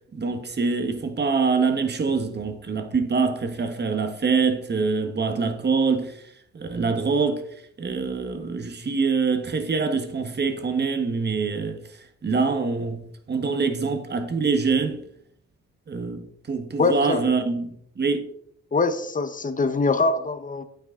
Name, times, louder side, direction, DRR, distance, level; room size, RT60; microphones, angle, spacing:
voice 1, 0.1-6.1 6.5-7.4 7.8-11.8 12.2-15.0 15.9-18.2, right 4 dB, 35° right, 1.7 m, -25 dB
voice 2, 16.8-17.2 18.7-20.6, left 3 dB, 25° left, 1.3 m, -23 dB
9.1 x 8.9 x 4.0 m
cardioid pair, 90°, 30 cm